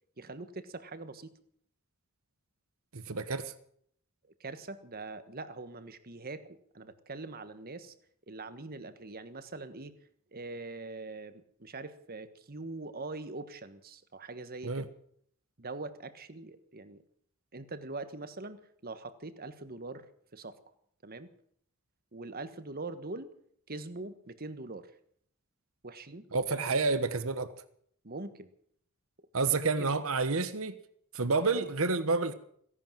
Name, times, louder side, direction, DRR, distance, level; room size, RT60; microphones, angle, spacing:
voice 1, 0.2-1.3 4.4-7.9 8.3-9.9 10.3-14.9 15.6-17.0 17.5-20.0 20.3-20.6 21.0-21.3 22.1-23.3 23.7-24.9 25.8-26.2 28.0-28.5 29.4-29.9 31.4-31.7, right 3 dB, 45° right, 11 dB, 1.4 m, -43 dB
voice 2, 2.9-3.5 14.6-14.8 26.3-27.5 29.3-30.7 31.1-32.3, right 3 dB, 65° right, 12 dB, 1.3 m, -29 dB
17.0 x 11.0 x 7.5 m, 0.64 s
head